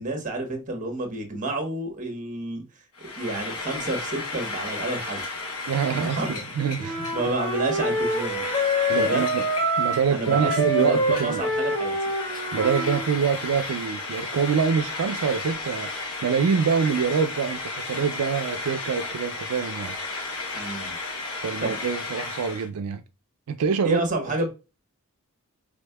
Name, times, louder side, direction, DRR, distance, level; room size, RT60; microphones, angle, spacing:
voice 1, 0.0-2.6 3.0-5.2 5.9-6.4 6.8-8.4 9.0-9.3 10.1-12.1 20.5-20.9 21.6-21.8 23.8-24.5, right 2 dB, 35° right, 1.1 m, -30 dB
Frying (food), 2.9-22.7, left 3 dB, 70° left, 0.9 m, -34 dB
voice 2, 5.7-6.2 6.6-7.1 8.9-9.4 9.8-11.4 12.5-20.0 21.4-23.0 23.5-24.1, right 6 dB, 85° right, 0.4 m, -25 dB
Wind instrument woodwind instrument, 6.8-13.1, equal, 25° left, 0.9 m, -26 dB
5.1 x 3.5 x 2.2 m
head